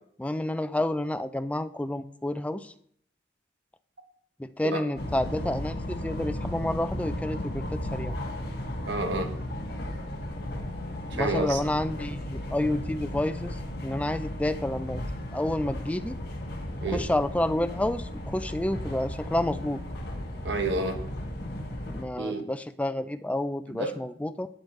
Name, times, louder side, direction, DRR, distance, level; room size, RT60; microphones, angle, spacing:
voice 1, 0.2-2.7 4.4-8.2 11.1-15.0 15.3-16.2 16.8-19.8 21.9-24.5, left 1 dB, 5° left, 11 dB, 0.3 m, -29 dB
sound 1, 4.9-22.0, left 1 dB, 55° left, 1.5 m, -35 dB
voice 2, 8.9-9.3 11.1-11.6 16.8-17.0 20.4-21.0 22.2-22.4 23.7-23.9, right 2 dB, 70° right, 6 dB, 1.2 m, -29 dB
11.5 x 7.8 x 3.2 m, 0.64 s
head